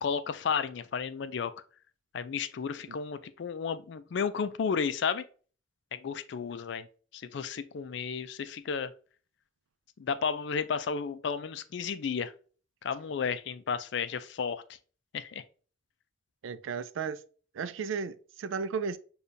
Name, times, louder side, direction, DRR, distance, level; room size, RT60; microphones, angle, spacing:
voice 1, 0.0-1.5 2.1-5.2 5.9-6.9 7.1-8.9 10.0-12.3 12.8-14.6 15.1-15.4, left 6 dB, 60° left, 0.4 m, -33 dB
voice 2, 16.4-17.2 17.5-19.0, right 5 dB, 80° right, 0.4 m, -34 dB
6.6 x 2.3 x 2.6 m
head